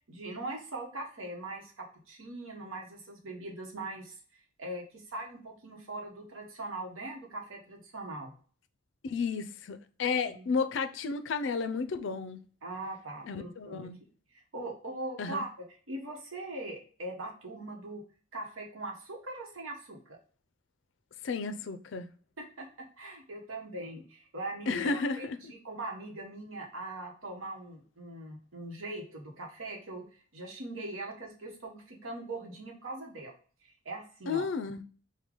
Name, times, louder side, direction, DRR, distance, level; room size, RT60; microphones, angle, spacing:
voice 1, 0.1-8.3 10.3-10.5 12.6-13.9 14.5-15.5 15.9-18.0 18.3-20.2 22.4-33.4 33.6-34.5, right 2 dB, 80° right, 1.0 m, -41 dB
voice 2, 9.0-12.4 13.3-14.0 15.2-15.4 21.2-22.1 24.7-25.4 34.3-34.8, left 4 dB, 65° left, 0.4 m, -32 dB
4.8 x 2.2 x 3.7 m
head